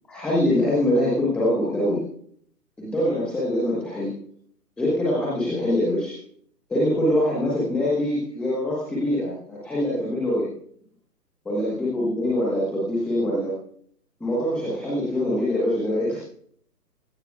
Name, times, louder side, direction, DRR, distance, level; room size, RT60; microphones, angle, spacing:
voice 1, 0.1-2.0 2.8-4.2 4.8-6.2 6.7-10.5 11.4-13.5 14.2-16.2, left 1 dB, ahead, -6 dB, 0.6 m, -24 dB
17.0 x 12.0 x 3.6 m, 0.62 s
figure-of-eight pair, 150°, 49 cm